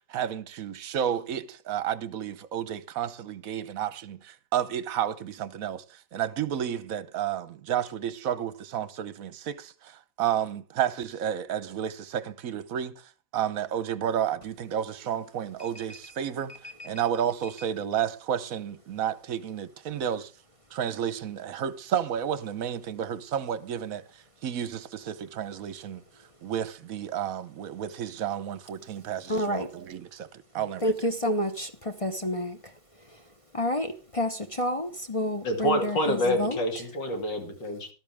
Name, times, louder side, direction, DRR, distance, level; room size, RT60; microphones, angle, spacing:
voice 1, 0.0-13.0 13.3-16.5 16.8-20.3 20.7-24.0 24.4-26.0 26.4-30.3 30.5-30.9, right 9 dB, 55° right, 1.1 m, -31 dB
voice 2, 15.6-16.0 16.8-16.9 29.3-29.7 30.8-32.7 33.5-36.6, equal, 25° left, 0.7 m, -29 dB
voice 3, 35.4-37.9, left 1 dB, 70° left, 3.2 m, -27 dB
14.0 x 12.5 x 3.5 m
omnidirectional pair, 2.0 m